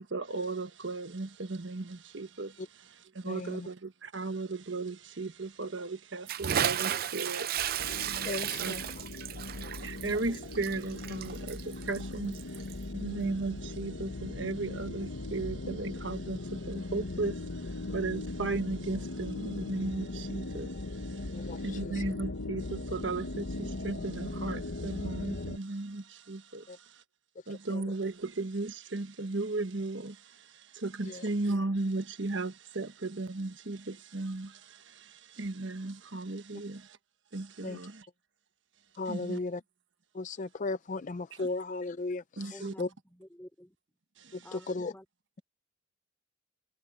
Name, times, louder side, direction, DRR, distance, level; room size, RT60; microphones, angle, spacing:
voice 1, 0.0-8.3 8.6-8.7 9.8-27.0 27.5-37.0 37.3-38.1 39.1-39.4 41.3-41.5 42.4-42.7 44.2-44.6, right 3 dB, 65° right, 1.3 m, -36 dB
voice 2, 3.2-3.7 8.2-8.8 21.3-22.0 26.7-26.8 27.7-27.8 31.1-31.2 37.6-37.8 39.0-39.6 40.1-42.9 44.5-44.9, left 3 dB, 40° left, 0.4 m, -36 dB
Bathtub (filling or washing) / Splash splatter, 6.3-12.8, right 9 dB, 50° right, 0.5 m, -34 dB
sound 1, 7.8-25.6, left 2 dB, 80° left, 1.2 m, -39 dB
voice 3, 42.5-43.8 44.4-45.1, equal, 10° left, 3.7 m, -51 dB
head